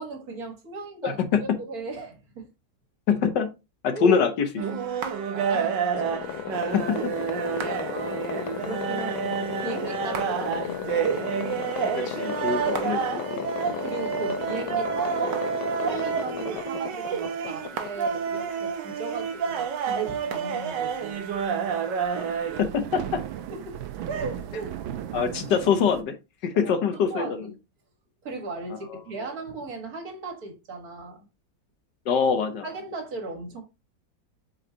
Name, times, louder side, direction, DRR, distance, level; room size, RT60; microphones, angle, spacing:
voice 1, 0.0-1.2 1.7-2.5 3.9-4.2 5.0-6.1 7.4-11.2 13.6-15.4 15.8-21.2 23.5-23.8 24.1-24.7 25.2-25.3 26.6-26.7 27.1-27.6 28.2-31.3 32.6-33.6, right 3 dB, 50° right, 2.0 m, -37 dB
voice 2, 1.0-1.4 3.1-3.5 3.8-4.8 6.7-7.1 12.0-13.4 22.6-23.2 25.1-26.1 26.4-27.5 28.9-29.0 32.1-32.6, left 6 dB, 65° left, 1.6 m, -24 dB
sound 1, 4.6-22.6, right 7 dB, 70° right, 1.5 m, -29 dB
sound 2, 6.0-18.6, left 10 dB, 90° left, 1.5 m, -34 dB
sound 3, 7.4-7.5 7.7-8.1 8.8-9.0 9.6-9.7 10.3-10.4 10.7-10.8 11.0-11.1 12.2-12.5 12.9-13.0 13.9-14.0 14.6-15.0 15.4-15.5 16.0-16.7 17.8-18.1 18.4-18.5 18.7-18.8 19.0-19.1 19.8-19.9 20.2-20.3 20.9-26.0, right 11 dB, 90° right, 1.5 m, -38 dB
7.8 x 4.5 x 2.8 m
omnidirectional pair, 2.1 m